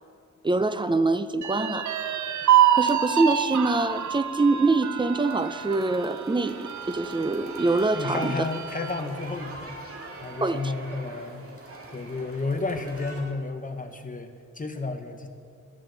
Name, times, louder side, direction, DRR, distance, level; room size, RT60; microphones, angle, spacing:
voice 1, 0.4-2.2 2.7-8.3 10.4-10.7, right 3 dB, 15° right, 11 dB, 0.4 m, -25 dB
sound 1, 1.4-9.1 9.5-9.6 10.0-10.7, right 10 dB, 65° right, 0.6 m, -27 dB
sound 2, 5.2-13.2, right 2 dB, 45° right, 2.0 m, -43 dB
voice 2, 7.9-9.8 10.2-11.4 11.9-15.3, left 3 dB, 25° left, 6 dB, 0.9 m, -32 dB
15.0 x 13.0 x 3.9 m, 2.4 s
wide cardioid pair, 135°, 32 cm